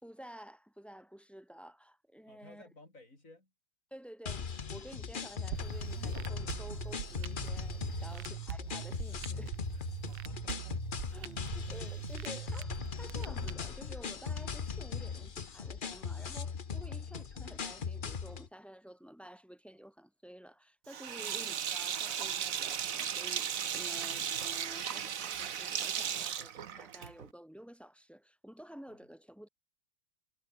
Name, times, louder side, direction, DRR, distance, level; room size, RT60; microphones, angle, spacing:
voice 1, 0.0-2.6 3.9-9.6 11.1-29.5, equal, ahead, 3.1 m, -51 dB
voice 2, 2.3-3.5 8.1-8.4 9.7-11.4 16.9-17.0 21.2-21.4 28.9-29.0, left 2 dB, 35° left, 7.0 m, -59 dB
sound 1, 4.3-18.5, left 6 dB, 50° left, 0.6 m, -39 dB
sound 2, 5.5-13.5, right 16 dB, 80° right, 1.6 m, -42 dB
Sink (filling or washing), 20.9-27.3, right 8 dB, 50° right, 1.2 m, -36 dB
omnidirectional pair, 2.4 m